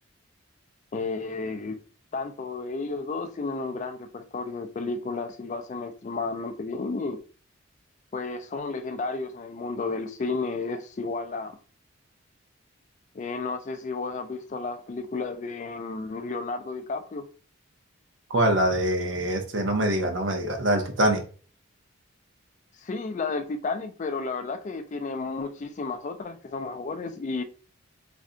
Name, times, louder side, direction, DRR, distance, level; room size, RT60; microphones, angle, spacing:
voice 1, 0.9-1.8 2.1-7.2 8.1-11.6 13.1-17.2 22.8-27.4, left 3 dB, 35° left, 0.3 m, -32 dB
voice 2, 18.3-21.2, right 1 dB, 60° right, 0.7 m, -24 dB
2.5 x 2.2 x 3.7 m
head